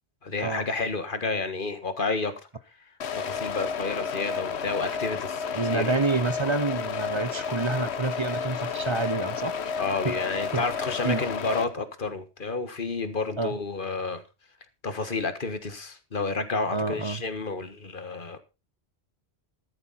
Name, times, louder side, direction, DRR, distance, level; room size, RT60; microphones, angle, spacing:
voice 1, 0.2-2.3 3.1-6.0 9.8-14.2 14.8-18.4, left 3 dB, 50° left, 11 dB, 1.7 m, -30 dB
sound 1, 3.0-11.6, left 6 dB, 75° left, 1.2 m, -31 dB
voice 2, 5.5-9.5 10.0-10.1 10.5-10.6 11.0-11.2 13.4-13.6 16.7-17.2, right 3 dB, 30° right, 13 dB, 0.8 m, -28 dB
13.0 x 11.5 x 4.2 m, 0.29 s
omnidirectional pair, 1.1 m